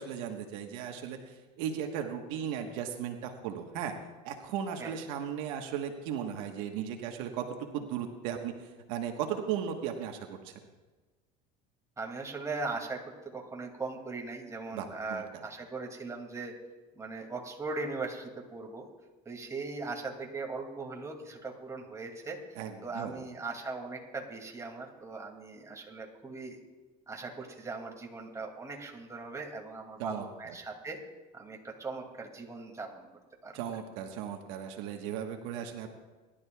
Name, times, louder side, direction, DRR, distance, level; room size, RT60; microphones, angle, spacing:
voice 1, 0.0-3.9 4.2-10.5 14.7-15.4 22.6-23.2 30.0-30.5 33.5-35.9, right 8 dB, 85° right, 4 dB, 1.3 m, -36 dB
voice 2, 12.0-16.5 16.9-18.9 19.2-22.4 22.8-26.6 27.1-31.0 31.3-33.1 33.4-33.5, right 3 dB, 15° right, 1 dB, 2.4 m, -39 dB
22.0 x 12.0 x 2.4 m, 1.3 s
supercardioid pair, 105°, 17 cm